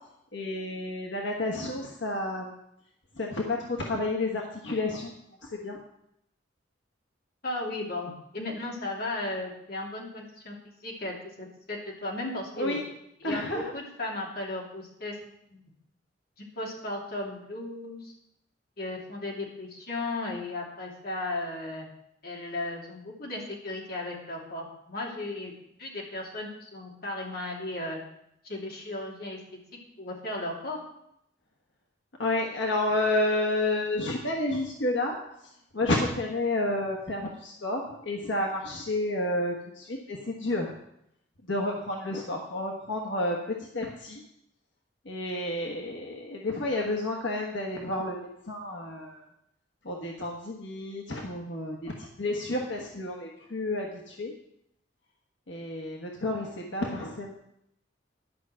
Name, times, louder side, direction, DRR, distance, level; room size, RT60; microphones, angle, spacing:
voice 1, 0.3-2.6 3.2-5.1 5.4-5.8 12.6-12.8 13.2-13.7 32.2-35.2 35.7-40.7 41.5-44.2 45.0-49.2 49.8-54.3 55.5-57.3, left 2 dB, 85° left, 0 dB, 1.4 m, -30 dB
voice 2, 7.4-10.5 10.8-12.8 13.2-15.2 15.5-15.6 16.4-18.1 18.8-21.9 22.2-25.5 25.8-28.0 28.4-29.4 30.0-30.8, left 2 dB, 55° left, -2 dB, 2.8 m, -35 dB
11.5 x 5.7 x 7.5 m, 0.78 s
head